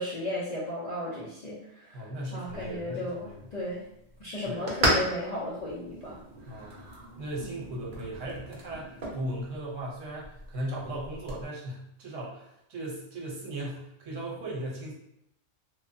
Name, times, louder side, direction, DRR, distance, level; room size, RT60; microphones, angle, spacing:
voice 1, 0.0-3.8 4.2-6.2 6.4-7.1, left 1 dB, 50° left, -7 dB, 0.5 m, -35 dB
voice 2, 1.9-3.4 4.5-4.6 6.5-6.8 7.2-14.9, right 1 dB, 75° right, -3 dB, 1.2 m, -37 dB
sound 1, 2.5-11.4, right 1 dB, 45° right, 0.7 m, -36 dB
3.1 x 2.1 x 2.6 m, 0.79 s
omnidirectional pair, 1.3 m